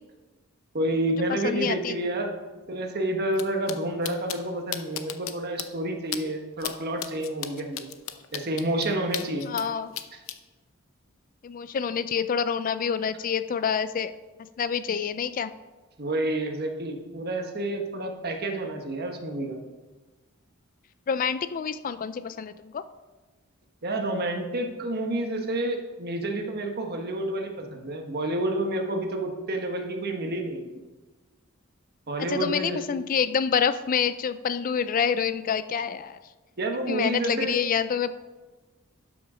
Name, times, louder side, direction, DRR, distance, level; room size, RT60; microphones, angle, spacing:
voice 1, 0.7-2.3 2.7-7.9 8.3-9.5 16.0-19.6 23.8-30.7 32.1-32.8 36.6-37.6, right 1 dB, 50° right, 3 dB, 1.3 m, -29 dB
voice 2, 1.4-2.0 9.5-9.9 11.4-14.1 14.6-15.5 21.1-22.8 32.3-36.2 36.9-38.1, left 7 dB, 40° left, 13 dB, 0.4 m, -27 dB
sound 1, 3.3-3.4 3.7-3.8 4.0-4.4 4.7-5.3 5.6-5.7 6.1-6.2 6.6-6.7 7.0-9.6 9.9-10.3, left 11 dB, 75° left, 0.7 m, -33 dB
12.0 x 6.3 x 5.0 m, 1.2 s
head